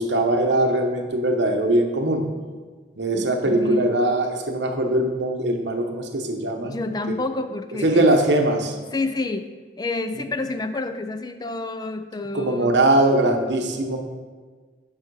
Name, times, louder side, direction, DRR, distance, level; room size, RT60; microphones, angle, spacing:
voice 1, 0.0-2.2 3.0-6.8 7.1-7.2 7.8-8.8 10.2-10.3 12.3-14.0, right 1 dB, 70° right, 3 dB, 1.0 m, -21 dB
voice 2, 3.1-4.0 6.6-8.1 8.9-9.5 9.8-12.8, left 2 dB, 20° left, 9 dB, 0.3 m, -29 dB
9.1 x 5.7 x 4.7 m, 1.5 s
head